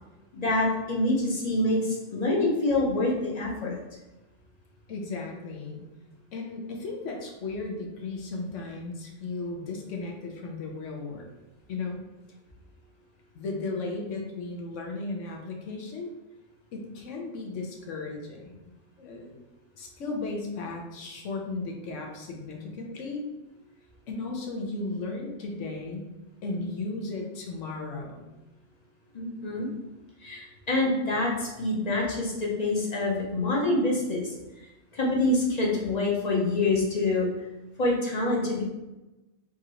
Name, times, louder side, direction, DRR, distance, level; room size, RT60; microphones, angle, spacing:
voice 1, 0.3-3.7 29.1-29.7 30.2-34.3 34.9-37.3 37.8-38.6, left 2 dB, 35° left, -2 dB, 0.8 m, -26 dB
voice 2, 4.9-5.8 6.3-11.3 11.7-12.0 13.3-16.1 16.7-18.6 19.0-19.4 19.8-23.2 24.1-26.0 26.4-28.3, left 3 dB, 70° left, 1 dB, 1.1 m, -35 dB
3.8 x 2.6 x 4.2 m, 1.0 s
omnidirectional pair, 1.3 m